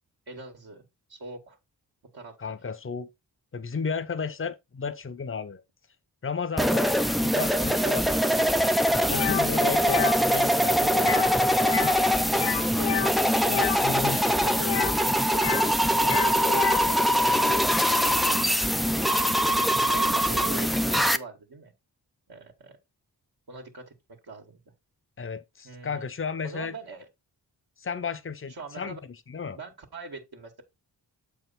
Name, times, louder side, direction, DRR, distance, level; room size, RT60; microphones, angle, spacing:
voice 1, 0.3-1.6 2.1-2.6 10.0-10.3 12.7-13.4 13.9-14.0 16.0-17.6 17.9-19.6 19.9-21.7 22.3-22.8 23.5-24.6 25.6-26.1 26.4-27.1 28.5-29.0 29.5-30.6, right 3 dB, 65° right, 1.8 m, -42 dB
voice 2, 2.4-3.1 3.5-5.6 6.2-6.9 7.2-8.8 9.1-12.0 12.4-12.7 13.5-14.8 25.2-26.7 27.8-29.0 29.3-29.6, left 5 dB, 30° left, 0.9 m, -34 dB
sound 1, 6.6-21.2, equal, ahead, 0.6 m, -23 dB
sound 2, 9.1-9.4 9.8-10.2 10.9-11.3 11.6-12.0 12.3-13.8 14.6-15.7 16.0-16.9, left 9 dB, 80° left, 0.7 m, -30 dB
7.3 x 4.7 x 4.1 m
cardioid pair, 50°, 41 cm